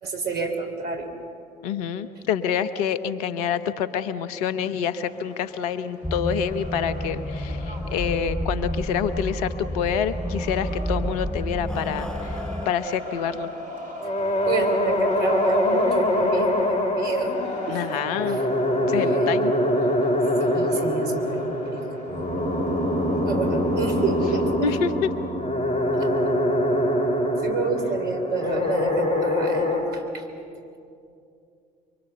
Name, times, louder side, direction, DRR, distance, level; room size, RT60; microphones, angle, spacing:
voice 1, 0.0-1.1 14.5-18.4 18.9-19.4 20.4-22.6 23.3-24.5 25.9-26.1 27.4-30.3, right 3 dB, 50° right, 4 dB, 3.5 m, -29 dB
voice 2, 1.6-12.4 12.6-13.5 17.7-18.4 18.8-19.5 24.6-25.1, left 8 dB, 70° left, 12 dB, 0.9 m, -27 dB
sound 1, 5.1-24.5, left 1 dB, 80° right, 3.2 m, -39 dB
sound 2, 6.0-12.7, equal, 5° left, 0.6 m, -30 dB
sound 3, 14.0-29.8, left 1 dB, 30° left, 7.0 m, -24 dB
24.0 x 24.0 x 6.8 m, 2.5 s
figure-of-eight pair, 55°, 20 cm